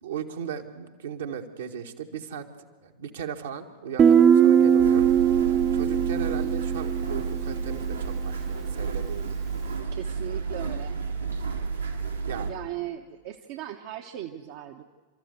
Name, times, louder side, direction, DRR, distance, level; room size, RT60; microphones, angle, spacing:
voice 1, 0.0-5.1 5.7-9.4 12.3-12.5, right 7 dB, 65° right, 3 dB, 1.7 m, -37 dB
Guitar, 4.0-7.6, right 8 dB, 30° right, 0.8 m, -20 dB
sound 1, 4.8-12.5, right 5 dB, 80° right, 2.6 m, -31 dB
voice 2, 9.9-11.0 12.5-14.8, right 12 dB, 50° right, 4 dB, 1.1 m, -38 dB
29.5 x 14.0 x 8.1 m, 1.5 s
figure-of-eight pair, 90°, 0 cm